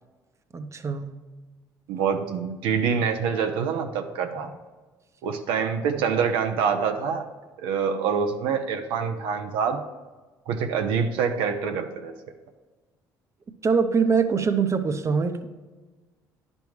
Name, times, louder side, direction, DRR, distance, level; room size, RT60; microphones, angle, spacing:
voice 1, 0.5-1.1 13.6-15.5, right 5 dB, 35° right, 9 dB, 0.7 m, -23 dB
voice 2, 1.9-4.5 5.2-7.3 7.6-9.8 10.5-12.1, right 6 dB, 80° right, 6 dB, 0.6 m, -26 dB
10.5 x 5.3 x 3.1 m, 1.3 s
supercardioid pair, 65°, 9 cm